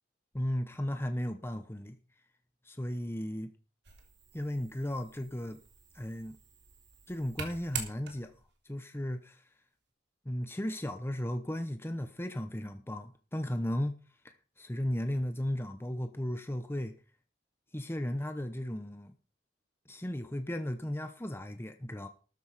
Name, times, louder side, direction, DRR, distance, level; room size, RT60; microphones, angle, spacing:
voice 1, 0.3-2.0 2.6-3.5 4.3-5.6 5.9-6.4 7.1-8.3 8.6-9.4 10.2-14.0 14.2-16.9 17.7-19.1 19.9-22.1, left 1 dB, 15° left, 0.9 m, -35 dB
sound 1, 3.8-8.5, right 6 dB, 65° right, 3.4 m, -45 dB
13.5 x 10.0 x 5.1 m
head